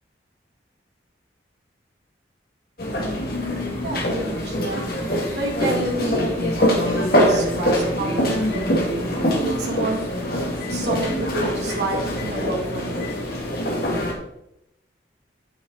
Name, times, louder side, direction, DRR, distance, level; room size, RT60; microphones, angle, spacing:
sound 1, 2.8-14.1, equal, 55° left, 2.2 m, -23 dB
voice 1, 3.8-4.9 5.3-8.7 9.4-10.0 10.7-13.1, right 1 dB, 70° right, -2 dB, 2.2 m, -29 dB
8.7 x 8.0 x 4.1 m, 0.81 s
head